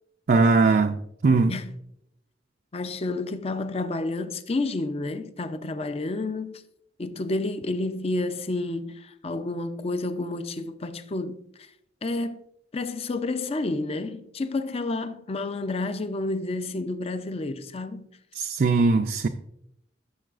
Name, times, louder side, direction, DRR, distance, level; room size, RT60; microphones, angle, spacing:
voice 1, 0.3-1.6 18.3-19.3, right 3 dB, 50° right, 0.4 m, -20 dB
voice 2, 2.7-6.6 7.0-11.7 12.0-12.4 12.7-18.1, left 2 dB, 35° left, 0.5 m, -30 dB
13.5 x 6.8 x 2.5 m
head